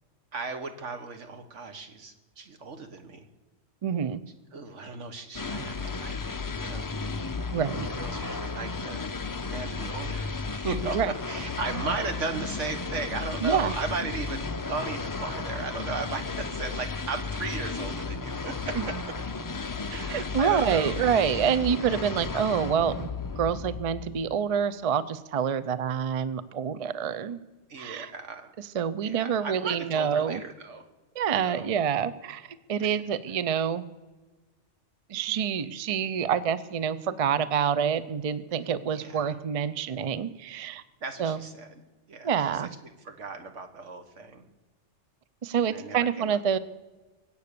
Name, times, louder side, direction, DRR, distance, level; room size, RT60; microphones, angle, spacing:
voice 1, 0.3-3.3 4.5-6.9 7.9-9.1 9.4-19.0 19.9-21.0 21.4-21.6 27.7-28.5 29.0-30.8 31.3-31.7 32.8-32.9 38.9-39.4 41.0-41.7 42.1-42.7 43.0-44.5 45.6-46.4, right 4 dB, 85° right, 7 dB, 1.8 m, -36 dB
voice 2, 3.8-4.2 7.5-7.9 10.9-11.1 13.4-13.7 18.8-18.9 19.9-23.1 23.4-27.4 27.8-28.1 28.6-30.4 31.2-33.8 35.1-40.8 41.2-41.4 42.2-42.7 45.4-46.6, right 7 dB, 40° right, 16 dB, 0.5 m, -27 dB
sound 1, 5.3-24.4, left 4 dB, 30° left, 0.3 m, -34 dB
23.5 x 8.3 x 6.8 m, 1.2 s
omnidirectional pair, 1.2 m